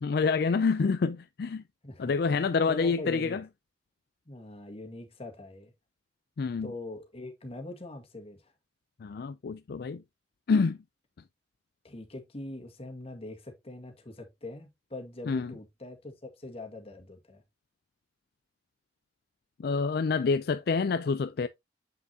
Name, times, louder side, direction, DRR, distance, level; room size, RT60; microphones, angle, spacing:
voice 1, 0.0-1.6 2.0-3.4 6.4-6.7 9.0-10.0 10.5-10.8 15.3-15.5 19.6-21.5, left 4 dB, 60° left, 0.4 m, -27 dB
voice 2, 1.8-3.4 4.3-5.7 6.6-8.5 11.8-17.4, left 2 dB, 35° left, 1.9 m, -43 dB
7.8 x 6.0 x 2.8 m
head